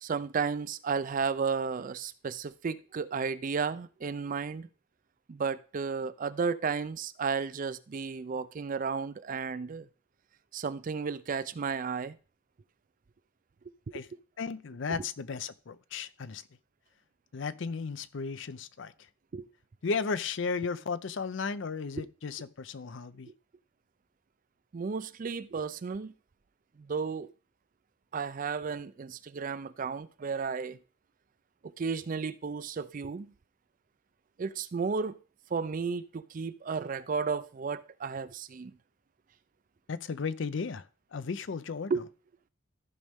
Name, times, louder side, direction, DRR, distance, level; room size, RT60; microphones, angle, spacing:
voice 1, 0.0-4.7 5.3-9.9 10.5-12.2 19.3-19.5 22.0-22.1 24.7-26.1 26.8-27.3 28.1-30.8 31.8-33.3 34.4-35.2 35.5-38.7 41.9-42.0, right 5 dB, 40° right, 0.4 m, -33 dB
voice 2, 14.4-16.4 17.3-18.9 19.8-23.3 39.9-40.9 41.1-42.0, left 5 dB, 60° left, 0.5 m, -35 dB
14.0 x 5.3 x 3.5 m
head